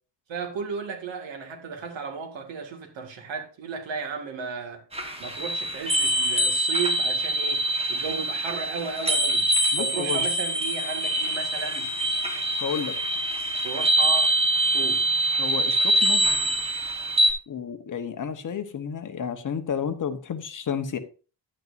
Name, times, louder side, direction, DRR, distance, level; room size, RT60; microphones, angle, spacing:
voice 1, 0.3-4.8 5.2-9.5 9.7-11.9 13.6-14.3 14.7-15.0, right 5 dB, 70° right, 2.1 m, -34 dB
sound 1, 4.9-17.3, right 1 dB, 15° right, 1.3 m, -24 dB
voice 2, 9.7-10.2 12.6-13.0 15.4-16.3 17.5-21.0, left 7 dB, 40° left, 1.1 m, -31 dB
11.0 x 8.9 x 2.6 m
cardioid pair, 140°, 46 cm